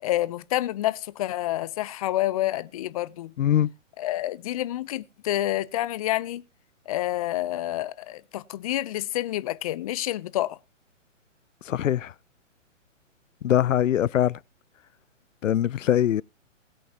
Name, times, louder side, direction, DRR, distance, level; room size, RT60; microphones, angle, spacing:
voice 1, 0.0-3.3 4.0-6.4 6.9-10.6, left 14 dB, 30° left, 0.6 m, -28 dB
voice 2, 3.4-3.7 11.7-12.1 13.4-14.4 15.4-16.2, left 11 dB, 75° left, 0.6 m, -22 dB
20.0 x 8.3 x 2.9 m
hypercardioid pair, 140°, 38 cm